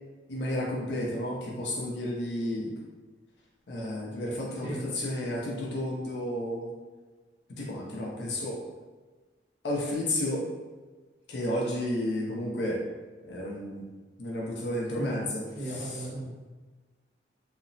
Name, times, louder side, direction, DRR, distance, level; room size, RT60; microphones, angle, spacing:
voice 1, 0.3-2.7 3.7-4.7 5.0-6.7 7.6-8.6 9.6-10.4 11.3-12.8 13.2-13.9 14.2-15.4, left 1 dB, 70° left, -3 dB, 0.5 m, -31 dB
voice 2, 4.5-4.9 14.9-16.3, right 1 dB, 30° right, -12 dB, 1.3 m, -37 dB
2.8 x 2.0 x 2.6 m, 1.3 s
head